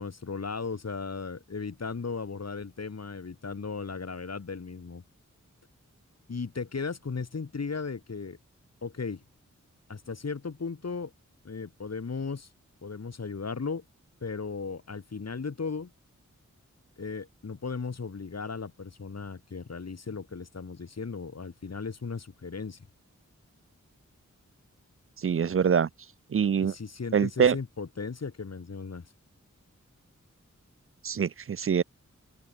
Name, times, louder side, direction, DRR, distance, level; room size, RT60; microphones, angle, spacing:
voice 1, 0.0-5.0 6.3-8.4 8.8-9.2 9.9-11.1 11.4-12.5 12.8-13.8 14.2-15.9 17.0-22.8 26.6-29.0, left 4 dB, 55° left, 1.4 m, -36 dB
voice 2, 25.2-25.9 26.3-26.7 27.1-27.6 31.0-31.8, right 7 dB, 45° right, 0.4 m, -24 dB
open air
wide cardioid pair, 55°, 31 cm